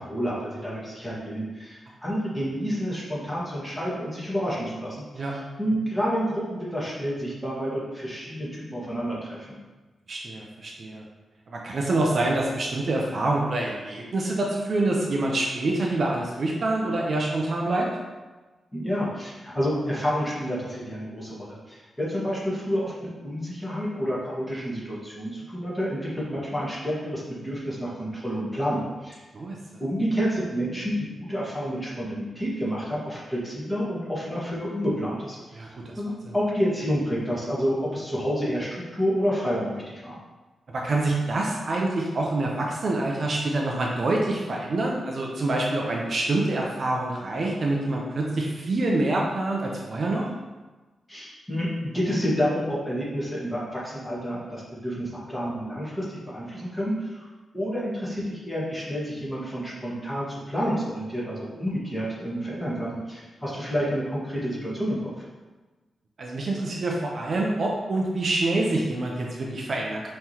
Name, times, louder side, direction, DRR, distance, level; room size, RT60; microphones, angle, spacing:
voice 1, 0.0-5.3 5.6-9.6 18.7-29.2 29.8-35.4 36.0-40.2 51.1-57.3 57.5-65.2, equal, 10° left, -7 dB, 1.5 m, -29 dB
voice 2, 10.1-11.0 11.5-17.9 29.3-29.6 35.5-35.9 36.2-36.3 40.7-50.3 66.2-70.1, right 2 dB, 50° right, -1 dB, 0.6 m, -26 dB
5.5 x 3.1 x 2.9 m, 1.2 s
wide cardioid pair, 110°, 0 cm